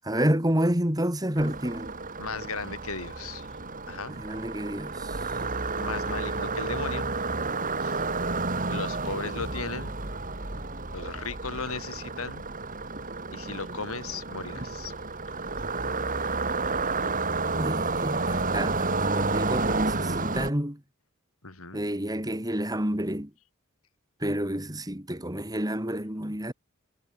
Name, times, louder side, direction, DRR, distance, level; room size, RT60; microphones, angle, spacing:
voice 1, 0.0-1.9 4.1-5.2 17.6-20.8 21.7-23.3 24.2-26.5, right 1 dB, 15° right, 3.7 m, -29 dB
sound 1, 1.4-20.5, right 3 dB, 40° right, 4.7 m, -31 dB
voice 2, 2.2-3.5 3.9-4.2 5.8-7.1 7.8-8.0 8.7-9.9 10.9-12.4 13.3-14.9 21.4-21.9, left 4 dB, 70° left, 5.3 m, -36 dB
head